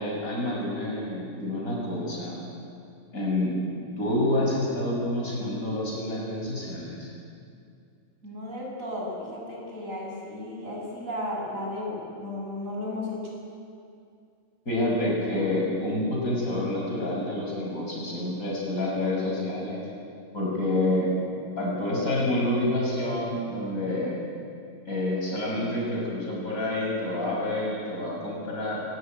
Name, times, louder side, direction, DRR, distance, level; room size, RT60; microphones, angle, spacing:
voice 1, 0.0-2.4 3.1-3.6 4.0-7.1 14.6-19.8 20.3-21.1 21.6-24.2 24.9-28.8, left 1 dB, 80° left, -3 dB, 6.7 m, -28 dB
voice 2, 8.2-13.3, left 1 dB, 70° right, -2 dB, 7.0 m, -34 dB
21.5 x 19.5 x 9.3 m, 2.4 s
omnidirectional pair, 1.5 m